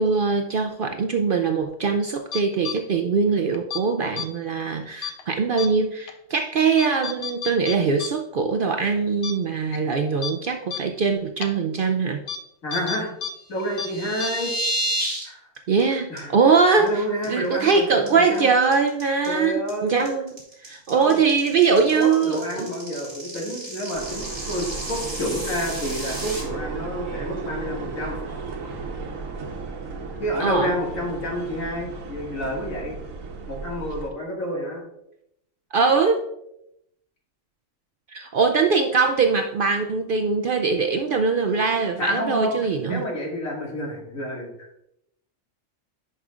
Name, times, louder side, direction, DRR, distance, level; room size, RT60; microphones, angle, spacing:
voice 1, 0.0-12.2 15.7-20.3 20.6-22.7 30.4-30.7 35.7-36.2 38.1-43.0, right 5 dB, 60° right, 5 dB, 0.5 m, -22 dB
sound 1, 2.3-2.8 3.5-3.8 4.2-4.3 5.0-5.2 5.6-5.7 6.1-6.2 6.8-8.1 8.4-8.5 8.9-9.0 9.2-9.3 9.7-9.8 10.2-10.3 10.7-10.8 11.4-11.5 12.3-12.4 12.7-13.3 13.6-13.9 14.2-14.3, left 8 dB, 70° left, 1.0 m, -31 dB
voice 2, 12.6-13.1 13.5-14.5 15.2-15.5 16.1-18.5 19.3-20.1 20.9-21.2 21.9-28.2 30.2-32.9 33.5-34.8 42.0-42.6 42.9-44.5, equal, 85° left, -2 dB, 2.4 m, -29 dB
sound 2, 13.6-15.2 15.5-15.8 16.2-16.3 16.6-16.9 17.2-17.7 18.1-26.4, right 1 dB, 25° right, 2.8 m, -31 dB
sound 3, 23.9-34.1, right 4 dB, 85° right, 1.3 m, -35 dB
11.0 x 5.5 x 2.4 m, 0.79 s
omnidirectional pair, 1.4 m